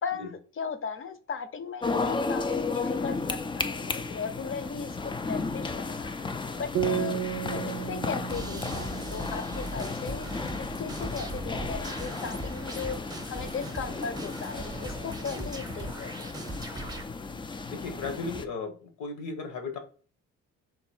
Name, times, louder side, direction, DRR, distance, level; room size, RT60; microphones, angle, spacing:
voice 1, 0.0-4.9 5.3-6.1 6.6-7.2 7.5-10.3 10.6-16.3, left 6 dB, 45° left, 0.7 m, -37 dB
sound 1, 1.8-18.5, left 4 dB, 15° left, 0.3 m, -34 dB
sound 2, 6.7-10.2, right 10 dB, 70° right, 0.5 m, -34 dB
sound 3, 8.3-17.0, right 2 dB, 15° right, 0.8 m, -39 dB
voice 2, 17.7-19.8, left 4 dB, 80° left, 1.2 m, -36 dB
3.8 x 2.6 x 4.3 m
cardioid pair, 90°, 30 cm